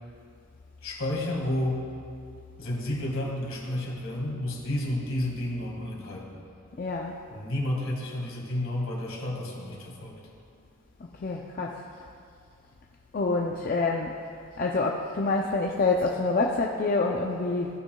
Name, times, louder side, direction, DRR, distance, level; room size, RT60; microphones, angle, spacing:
voice 1, 0.8-1.8 2.6-6.4 7.3-10.2, left 1 dB, 65° left, -2 dB, 1.8 m, -31 dB
voice 2, 6.8-7.1 11.2-11.7 13.1-14.1 14.6-17.7, left 3 dB, 40° left, 0 dB, 0.4 m, -26 dB
16.0 x 6.0 x 2.3 m, 2.3 s
head